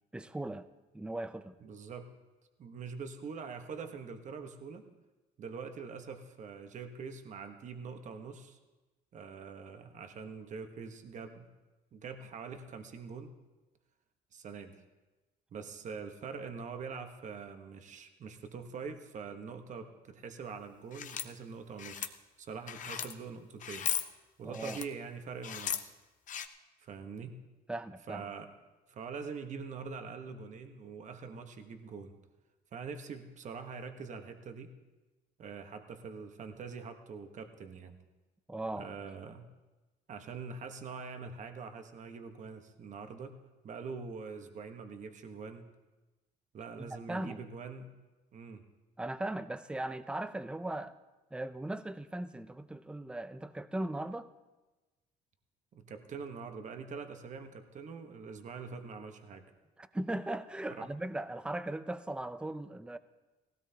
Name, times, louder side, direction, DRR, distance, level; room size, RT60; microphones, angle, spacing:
voice 1, 0.1-0.7 0.9-1.5 24.4-24.8 27.7-28.3 38.5-38.9 46.8-47.4 49.0-51.0 51.3-54.3 59.8-63.0, right 1 dB, 5° right, 12 dB, 0.5 m, -38 dB
voice 2, 1.6-2.1 2.6-4.8 5.4-8.6 9.1-11.5 11.9-13.3 14.3-14.8 15.5-23.9 24.4-25.9 26.8-27.4 28.1-28.5 28.9-32.1 32.7-34.7 35.4-38.0 38.8-39.5 40.1-43.4 43.6-45.7 46.5-47.9 48.3-48.6 55.7-59.4 60.7-60.9, right 5 dB, 45° right, 6 dB, 1.2 m, -44 dB
sound 1, 20.9-21.3 21.8-22.1 22.7-23.1 23.6-24.1 24.5-24.8 25.4-25.8 26.3-26.5, left 9 dB, 50° left, 0.7 m, -36 dB
18.5 x 16.5 x 2.8 m, 1.1 s
cardioid pair, 110°, 17 cm